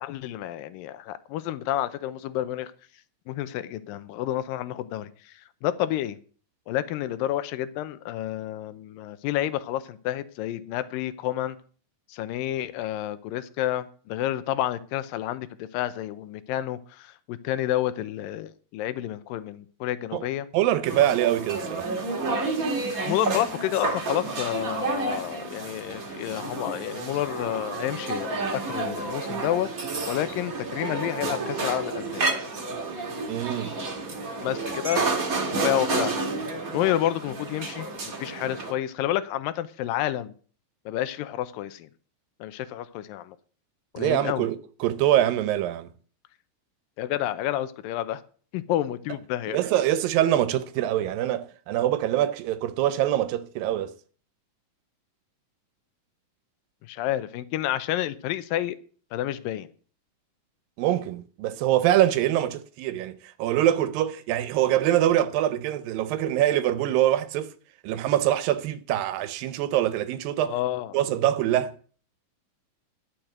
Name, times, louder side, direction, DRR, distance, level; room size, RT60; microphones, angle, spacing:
voice 1, 0.0-2.7 3.3-6.2 6.7-11.6 12.1-20.5 23.0-29.7 30.1-32.3 34.4-35.3 35.6-36.2 36.7-37.9 38.2-40.3 40.9-41.9 42.4-43.4 43.9-44.5 47.0-48.2 48.5-49.6 56.9-58.8 59.1-59.7 70.4-71.0, left 13 dB, 85° left, 2.5 m, -29 dB
voice 2, 20.5-21.9 33.3-33.7 44.0-45.9 49.5-53.9 60.8-67.5 67.8-70.5 70.9-71.7, right 12 dB, 85° right, 2.4 m, -24 dB
sound 1, 20.8-38.7, right 3 dB, 35° right, 1.7 m, -30 dB
12.0 x 6.5 x 7.7 m
omnidirectional pair, 4.0 m